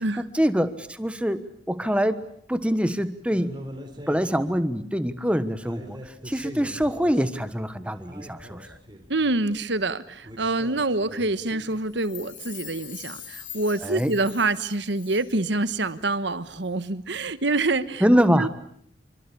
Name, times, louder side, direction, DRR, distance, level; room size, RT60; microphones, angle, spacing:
voice 1, 0.0-1.4 1.7-2.2 2.5-3.5 4.1-8.8 13.8-14.1 18.0-18.5, equal, 5° right, 12 dB, 1.3 m, -24 dB
sound 1, 3.3-4.6 5.1-5.2 5.5-7.6 7.8-9.6 10.2-11.8, equal, 25° right, 4.2 m, -42 dB
voice 2, 9.1-18.1 18.4-18.5, right 2 dB, 70° right, 13 dB, 1.4 m, -26 dB
Chime, 11.9-15.5 15.8-15.9, left 10 dB, 45° left, 2.9 m, -43 dB
27.0 x 24.5 x 8.5 m, 0.65 s
head